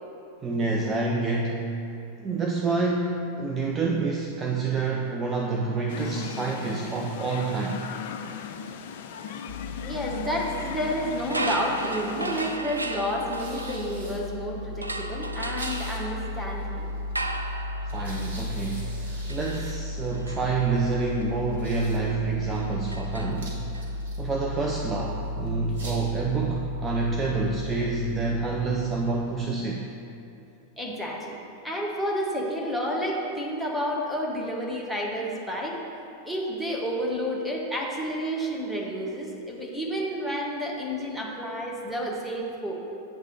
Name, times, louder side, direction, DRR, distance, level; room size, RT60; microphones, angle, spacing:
voice 1, 0.4-1.7 2.2-7.9 17.9-23.9 24.2-29.9, right 4 dB, 20° right, -1 dB, 0.5 m, -28 dB
sound 1, 5.9-12.6, left 7 dB, 55° left, 0.3 m, -37 dB
sound 2, 9.5-29.4, left 1 dB, 60° right, 1.4 m, -35 dB
voice 2, 9.8-16.9 30.8-31.4 31.6-35.8 36.2-42.7, equal, ahead, -3 dB, 1.1 m, -30 dB
sound 3, 11.2-14.3 14.8-23.8, right 2 dB, 80° right, 0.3 m, -36 dB
8.0 x 3.3 x 6.2 m, 2.7 s
figure-of-eight pair, 90°, 0 cm